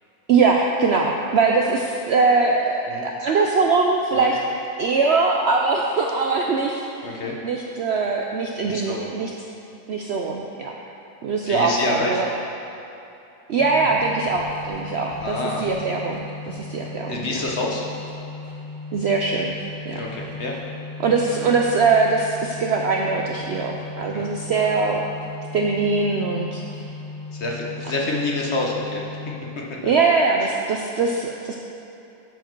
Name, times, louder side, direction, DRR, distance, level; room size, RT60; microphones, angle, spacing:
voice 1, 0.3-4.4 4.8-7.1 7.4-9.3 9.9-10.8 11.2-12.3 13.5-17.4 18.9-19.5 19.8-20.0 21.0-25.0 25.5-26.6 29.8-31.6, right 4 dB, 65° right, 0 dB, 0.6 m, -22 dB
voice 2, 7.0-7.4 8.6-9.1 11.5-12.2 15.2-15.7 17.1-17.9 19.9-20.6 21.4-21.5 24.1-24.7 27.3-29.0 29.6-29.9, left 2 dB, 50° left, -2 dB, 1.2 m, -28 dB
sound 1, 13.6-29.7, left 3 dB, 15° left, 0.9 m, -37 dB
12.0 x 4.7 x 4.5 m, 2.9 s
omnidirectional pair, 1.6 m